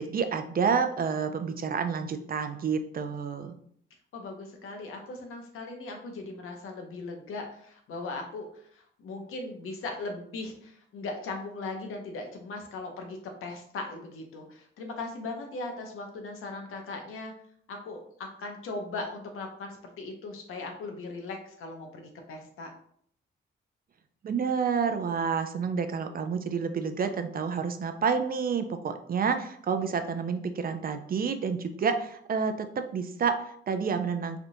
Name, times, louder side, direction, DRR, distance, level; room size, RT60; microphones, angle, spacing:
voice 1, 0.0-3.6 24.2-34.4, right 6 dB, 45° right, 8 dB, 0.4 m, -29 dB
voice 2, 4.1-17.3 17.7-22.7, left 3 dB, 80° left, 3 dB, 0.7 m, -39 dB
3.3 x 2.4 x 2.7 m, 0.64 s
cardioid pair, 65°, 21 cm